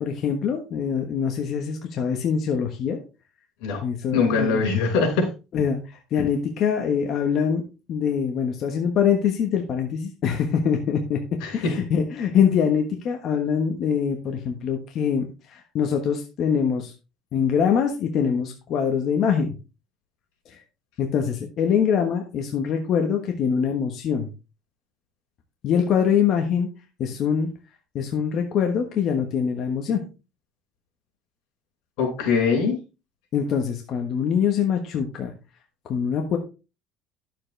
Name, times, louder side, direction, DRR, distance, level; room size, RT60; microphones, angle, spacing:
voice 1, 0.0-3.0 3.8-4.6 5.5-7.6 7.9-11.2 11.5-16.9 17.3-19.5 20.5-20.6 21.0-24.3 25.6-26.7 27.0-27.5 27.9-30.0 33.3-35.3 35.9-36.4, left 7 dB, 45° left, 3 dB, 1.3 m, -24 dB
voice 2, 4.1-5.3 11.4-11.7 32.0-32.8, left 5 dB, 85° left, 2 dB, 4.9 m, -22 dB
11.5 x 7.4 x 3.3 m, 0.30 s
cardioid pair, 155°, 0 cm